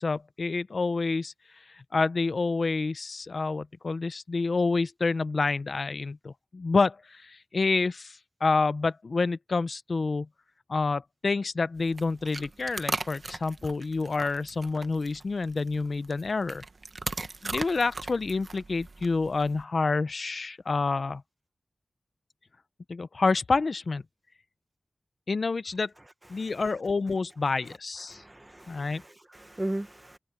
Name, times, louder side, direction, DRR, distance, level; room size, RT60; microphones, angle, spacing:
voice 1, 0.0-1.3 1.7-10.3 10.7-16.6 17.4-21.2 22.9-24.0 25.3-25.9 26.3-28.2 28.7-29.0, left 3 dB, 65° left, 0.7 m, -28 dB
sound 1, 11.8-19.6, right 3 dB, 55° right, 1.1 m, -39 dB
voice 2, 28.1-30.2, right 1 dB, 20° right, 1.4 m, -37 dB
wide cardioid pair, 85°, 0 cm